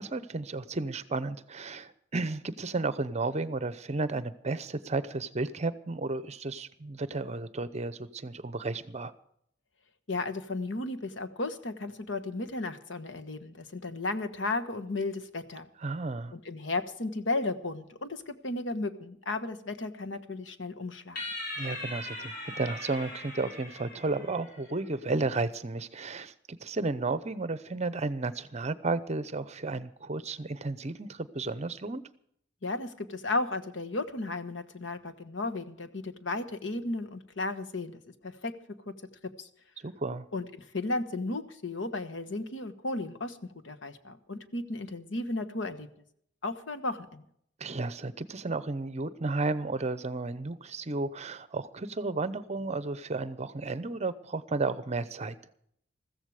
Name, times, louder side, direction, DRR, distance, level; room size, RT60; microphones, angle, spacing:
voice 1, 0.0-9.1 15.8-16.3 21.6-32.0 39.8-40.3 47.6-55.3, right 3 dB, 35° right, 0.8 m, -33 dB
voice 2, 10.1-15.7 16.3-21.2 32.6-38.5 38.9-39.0 39.4-39.5 40.3-45.9 46.4-47.2, left 2 dB, 80° left, 1.3 m, -34 dB
sound 1, 21.2-24.7, left 1 dB, 55° left, 7.3 m, -40 dB
15.0 x 14.5 x 4.9 m
head